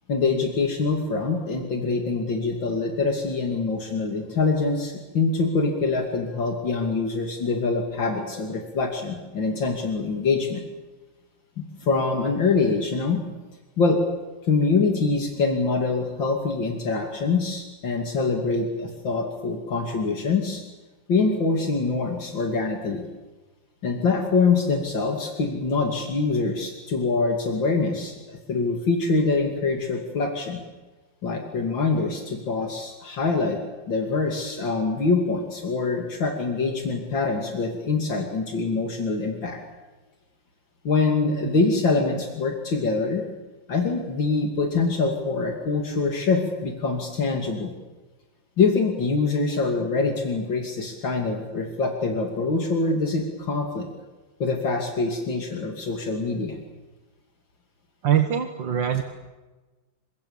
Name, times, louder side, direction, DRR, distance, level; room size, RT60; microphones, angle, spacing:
voice 1, 0.1-10.6 11.6-13.2 13.8-14.0 14.4-20.6 21.1-23.0 23.8-30.6 31.2-33.6 33.9-39.6 40.8-43.2 43.7-47.7 48.6-53.9 54.4-56.6, left 4 dB, 80° left, 2 dB, 3.4 m, -24 dB
voice 2, 58.0-59.0, right 9 dB, 75° right, 6 dB, 2.2 m, -23 dB
28.5 x 25.5 x 7.3 m, 1.2 s
omnidirectional pair, 2.1 m